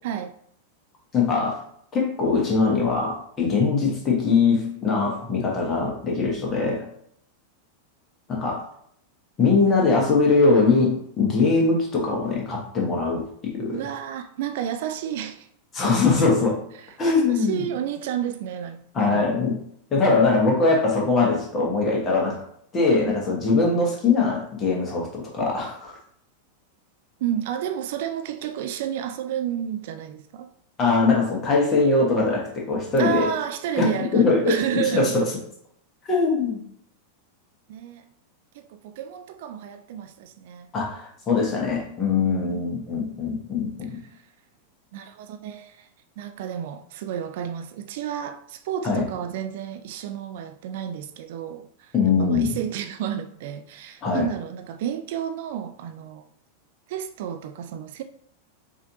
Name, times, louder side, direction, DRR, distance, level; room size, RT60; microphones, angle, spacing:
voice 1, 0.0-0.3 13.7-15.5 16.8-19.4 27.2-30.5 33.0-35.2 37.7-38.0 38.5-40.7 42.5-42.6 44.1-44.2 44.9-45.9 46.2-56.3 56.9-58.0, right 9 dB, 50° right, 0.3 m, -31 dB
voice 2, 1.1-1.6 1.9-6.9 8.3-8.7 9.4-13.8 15.7-16.6 17.0-17.6 18.9-19.6 19.9-22.4 22.7-26.0 30.8-33.3 33.8-35.2 36.0-36.6 40.7-44.0 48.8-49.1 51.9-52.6 54.0-54.3, left 4 dB, 25° left, 1.3 m, -22 dB
4.8 x 2.8 x 2.7 m
figure-of-eight pair, 90°, 0 cm